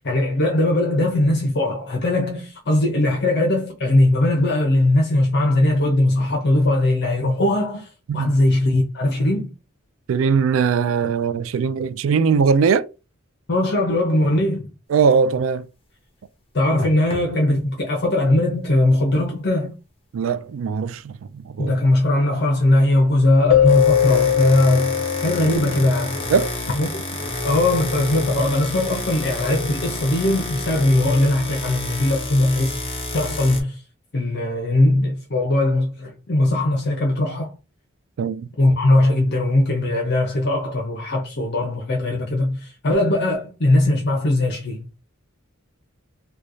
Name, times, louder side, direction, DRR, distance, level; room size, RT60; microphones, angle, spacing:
voice 1, 0.0-9.5 13.5-14.7 16.5-19.7 21.6-26.2 26.7-27.0 27.4-32.8 33.1-33.8 34.1-37.5 38.6-44.9, left 1 dB, 55° left, 0.8 m, -20 dB
voice 2, 10.1-12.8 14.9-15.6 20.1-21.1 21.4-21.7 26.3-26.5 38.2-38.5, right 6 dB, 70° right, 0.3 m, -20 dB
sound 1, 17.1-17.3 23.4-33.6, left 2 dB, 25° left, 0.9 m, -29 dB
Keyboard (musical), 23.5-26.2, left 10 dB, 80° left, 0.3 m, -20 dB
3.1 x 2.3 x 3.8 m
head